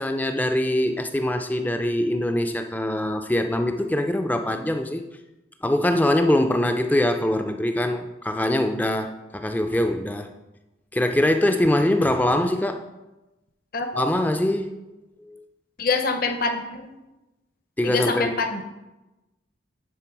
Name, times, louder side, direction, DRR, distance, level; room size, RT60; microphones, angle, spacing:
voice 1, 0.0-5.0 5.6-10.3 10.9-12.8 13.9-14.7 15.3-15.4 17.8-18.3, left 1 dB, 10° left, 6 dB, 0.3 m, -23 dB
voice 2, 13.7-14.1 15.8-16.9 17.8-18.6, left 4 dB, 45° left, 6 dB, 0.7 m, -25 dB
9.9 x 3.7 x 4.6 m, 1.0 s
head